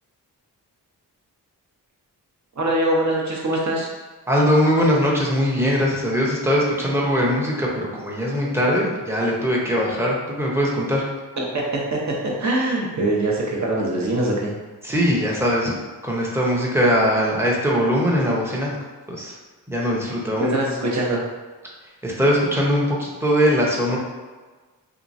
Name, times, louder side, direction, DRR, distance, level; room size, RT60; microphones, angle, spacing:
voice 1, 2.6-3.9 11.4-12.0 12.4-14.5 20.5-21.2, right 1 dB, 40° right, -3 dB, 0.9 m, -23 dB
voice 2, 4.3-11.1 14.8-15.7 16.0-18.8 19.1-19.3 19.7-20.6 22.0-24.0, equal, 5° right, -4 dB, 0.8 m, -21 dB
2.8 x 2.4 x 2.6 m, 1.3 s
cardioid pair, 45°, 42 cm